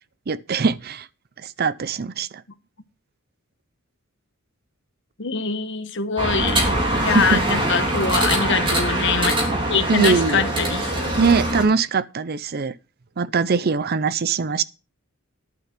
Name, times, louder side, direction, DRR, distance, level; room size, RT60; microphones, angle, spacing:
voice 1, 0.3-1.1 1.4-2.3 7.0-7.4 9.9-10.4 11.2-12.7 13.2-14.6, right 5 dB, 50° right, 0.5 m, -21 dB
voice 2, 5.2-6.6 7.0-9.3 9.7-11.1, left 5 dB, 60° left, 1.2 m, -24 dB
sound 1, 6.2-11.6, right 1 dB, 25° right, 3.4 m, -23 dB
11.5 x 6.7 x 5.9 m
head